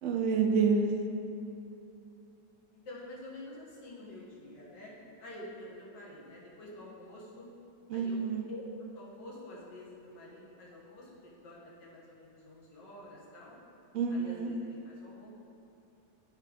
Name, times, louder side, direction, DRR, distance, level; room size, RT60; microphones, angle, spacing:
voice 1, 0.0-0.9 7.9-8.5 13.9-14.5, right 5 dB, 80° right, 2 dB, 0.6 m, -28 dB
voice 2, 2.7-4.9 5.2-7.5 7.9-8.2 8.5-8.6 9.0-13.6 14.1-15.3, left 1 dB, 75° left, -6 dB, 2.0 m, -48 dB
9.5 x 3.3 x 4.9 m, 2.7 s
omnidirectional pair, 1.9 m